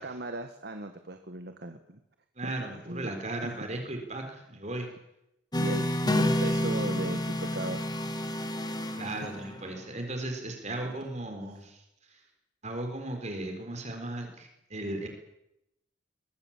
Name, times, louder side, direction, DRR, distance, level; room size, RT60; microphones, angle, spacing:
voice 1, 0.0-2.0 2.4-3.1 3.4-3.5 5.6-7.9 10.8-10.9, right 1 dB, 55° right, 7 dB, 1.8 m, -37 dB
voice 2, 2.4-4.9 9.0-11.8 12.1-12.2 12.6-15.1, right 1 dB, 35° right, 4 dB, 4.4 m, -36 dB
sound 1, 5.5-9.8, equal, 20° left, 2.1 m, -29 dB
23.5 x 22.0 x 7.5 m, 0.83 s
head